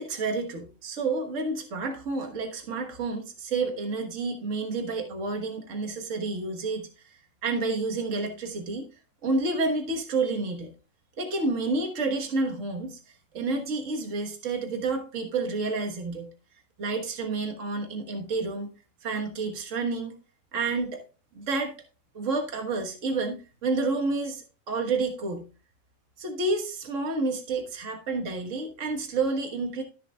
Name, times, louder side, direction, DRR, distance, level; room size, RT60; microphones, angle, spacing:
voice 1, 0.0-8.9 9.2-10.7 11.2-16.3 16.8-18.7 19.0-20.2 20.5-21.0 21.4-21.7 22.1-25.5 26.2-29.8, right 3 dB, 65° right, 3 dB, 1.7 m, -29 dB
13.0 x 7.3 x 2.3 m, 0.33 s
omnidirectional pair, 1.5 m